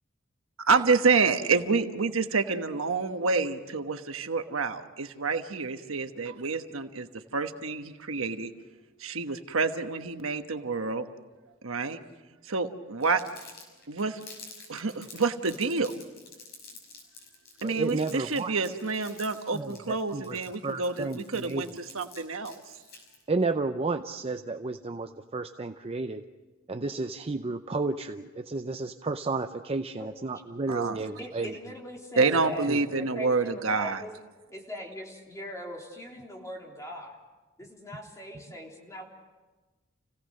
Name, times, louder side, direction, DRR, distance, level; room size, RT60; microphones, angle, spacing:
voice 1, 0.7-7.1 7.3-8.5 9.0-11.0 11.6-12.0 12.5-13.2 13.9-14.2 14.7-15.9 17.6-22.5 30.7-31.0 32.2-34.0, right 4 dB, 80° right, 7 dB, 1.2 m, -28 dB
Crumpling crinkling, 13.0-23.2, left 4 dB, 50° left, 5.9 m, -49 dB
voice 2, 17.6-18.5 19.5-20.4 20.6-21.6 23.3-26.2 26.7-31.5 32.3-32.4 32.7-32.8, right 3 dB, 30° right, 7 dB, 0.6 m, -32 dB
voice 3, 31.2-34.1 34.5-37.2 37.6-39.1, equal, 15° left, -1 dB, 3.3 m, -40 dB
29.0 x 17.0 x 6.5 m, 1.2 s
head